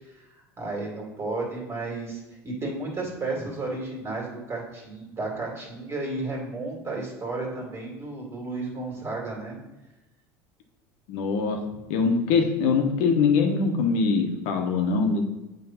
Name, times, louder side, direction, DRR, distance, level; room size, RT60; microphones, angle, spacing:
voice 1, 0.3-9.6 11.7-11.8, right 2 dB, 25° right, -3 dB, 2.4 m, -33 dB
voice 2, 11.1-11.6 11.9-15.2, left 5 dB, 65° left, 4 dB, 1.1 m, -23 dB
7.6 x 3.4 x 5.7 m, 1.0 s
supercardioid pair, 100°, 11 cm